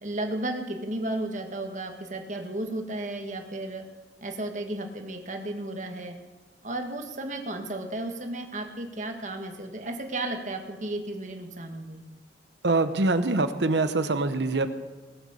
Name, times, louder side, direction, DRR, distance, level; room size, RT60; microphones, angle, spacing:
voice 1, 0.0-3.8 4.2-6.1 6.6-12.0, right 1 dB, 40° right, 4 dB, 1.6 m, -33 dB
voice 2, 12.6-14.7, right 2 dB, 75° right, 10 dB, 1.0 m, -24 dB
19.0 x 8.0 x 6.9 m, 1.2 s
head